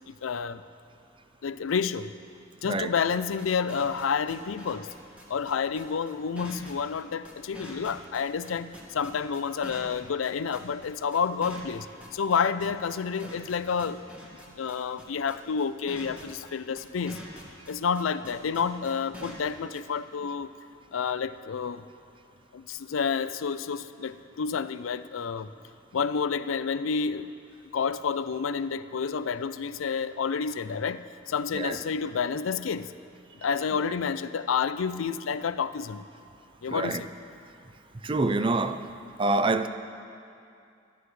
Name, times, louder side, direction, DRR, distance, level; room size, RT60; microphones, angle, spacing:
voice 1, 0.1-0.6 1.4-2.1 2.6-4.9 5.3-11.9 12.1-14.0 14.6-17.2 17.7-20.5 20.9-21.8 22.5-25.5 25.9-27.3 27.7-32.9 33.4-36.1 36.6-37.1, left 6 dB, 90° left, 13 dB, 0.5 m, -29 dB
voice 2, 2.6-2.9 13.2-13.3 31.5-31.8 33.7-33.9 36.7-37.0 38.0-38.9 39.2-39.7, right 2 dB, 25° right, 9 dB, 0.5 m, -27 dB
sound 1, 2.8-19.8, equal, 5° right, 1.9 m, -45 dB
24.0 x 11.5 x 3.2 m, 2.4 s
head